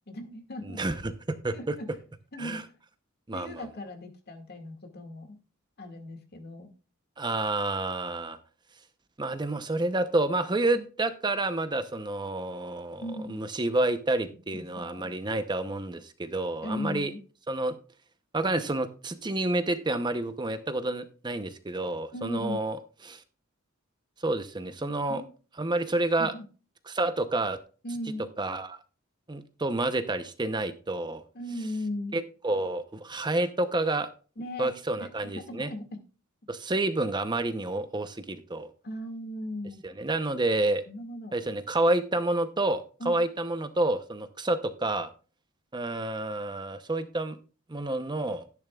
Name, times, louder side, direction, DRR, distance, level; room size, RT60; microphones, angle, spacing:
voice 1, 0.1-0.8 1.5-1.9 2.3-2.6 3.3-5.4 5.8-6.7 13.0-13.4 14.5-15.1 16.6-17.2 22.1-22.6 25.1-25.3 26.2-26.4 27.8-28.3 31.3-32.2 34.4-34.7 35.0-36.0 38.8-39.8 40.9-41.4 43.0-43.2, left 1 dB, 50° left, 5 dB, 2.0 m, -37 dB
voice 2, 0.8-1.1 1.4-1.7 2.4-2.6 3.3-3.7 7.2-8.4 9.2-13.0 13.3-17.1 17.5-17.7 18.3-22.8 23.0-23.2 24.2-25.2 25.6-26.3 26.9-27.6 28.4-28.8 29.3-31.2 32.1-34.1 34.6-35.7 36.5-38.7 39.8-40.8 41.3-45.1 45.7-47.4 47.7-48.5, right 2 dB, 20° right, 9 dB, 0.7 m, -29 dB
12.5 x 10.5 x 2.3 m, 0.36 s
head